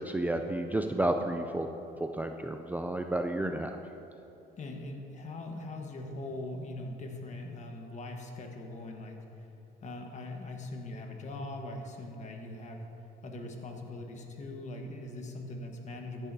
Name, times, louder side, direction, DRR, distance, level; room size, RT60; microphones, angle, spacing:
voice 1, 0.0-1.7 2.1-3.8, right 1 dB, 10° right, 5 dB, 0.4 m, -31 dB
voice 2, 4.6-9.2 9.8-12.9 13.2-16.3, left 2 dB, 45° left, 3 dB, 1.4 m, -41 dB
15.0 x 10.5 x 2.8 m, 2.9 s
cardioid pair, 110°, 17 cm